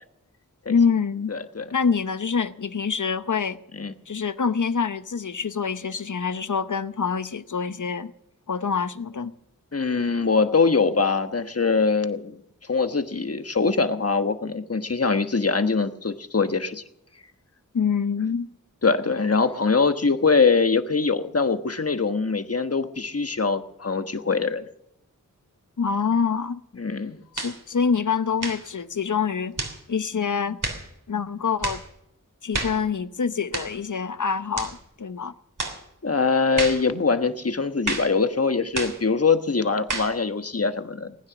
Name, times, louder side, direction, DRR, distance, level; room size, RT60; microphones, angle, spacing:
voice 1, 0.7-1.3 1.7-3.6 4.1-8.1 8.5-9.3 17.7-18.5 25.8-26.6 27.3-29.6 29.9-30.6 31.1-31.8 32.4-35.3, left 6 dB, 60° left, 0.8 m, -25 dB
voice 2, 1.3-1.6 3.8-3.9 9.7-12.4 12.7-16.8 18.8-24.6 26.8-27.2 36.0-41.2, left 4 dB, 45° left, 1.3 m, -23 dB
sound 1, 27.4-27.6 28.4-28.7 29.6-29.8 30.6-30.9 31.6-31.9 32.5-32.8 33.5-33.8 34.6-34.8 35.6-35.8 36.6-36.9 37.9-38.2 38.8-39.0 39.9-40.2, right 2 dB, 65° right, 3.2 m, -30 dB
19.5 x 9.8 x 6.1 m
wide cardioid pair, 45°, 33 cm